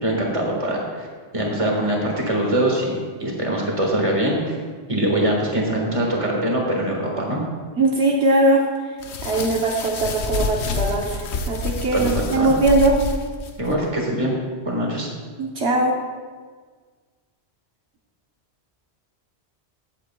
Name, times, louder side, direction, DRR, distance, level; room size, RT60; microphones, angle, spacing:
voice 1, 0.0-1.1 1.3-4.6 4.9-7.4 11.9-12.5 13.6-14.3 14.7-15.1, right 1 dB, 30° right, -2 dB, 1.8 m, -23 dB
voice 2, 7.8-8.6 9.2-13.0 15.4-16.0, right 2 dB, 70° right, -1 dB, 1.2 m, -20 dB
sound 1, 9.0-13.8, left 3 dB, 80° left, 1.0 m, -28 dB
15.5 x 8.0 x 2.3 m, 1.5 s
omnidirectional pair, 1.1 m